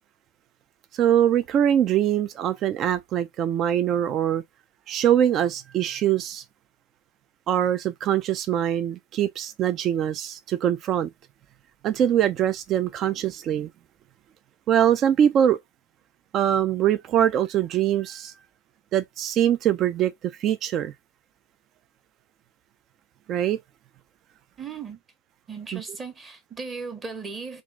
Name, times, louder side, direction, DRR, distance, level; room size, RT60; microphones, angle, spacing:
voice 1, 0.9-4.4 4.9-6.4 7.5-11.1 11.8-13.7 14.7-15.6 16.3-18.3 18.9-20.9 23.3-23.6 25.7-25.8, right 10 dB, 40° right, 0.4 m, -23 dB
voice 2, 24.6-25.0 25.5-27.6, right 4 dB, 25° right, 1.1 m, -36 dB
3.6 x 2.5 x 3.5 m
hypercardioid pair, 110°, 0 cm